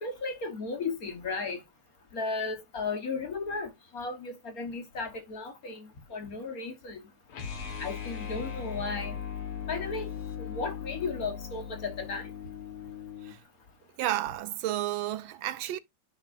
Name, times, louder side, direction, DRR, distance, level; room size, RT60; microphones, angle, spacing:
voice 1, 0.0-1.6 2.1-7.0 7.8-9.2 9.7-10.1 10.4-12.3, left 4 dB, 50° left, 1.5 m, -35 dB
sound 1, 7.3-13.4, left 8 dB, 75° left, 2.2 m, -38 dB
voice 2, 14.0-15.8, right 13 dB, 75° right, 1.4 m, -31 dB
10.5 x 5.6 x 2.5 m
omnidirectional pair, 2.3 m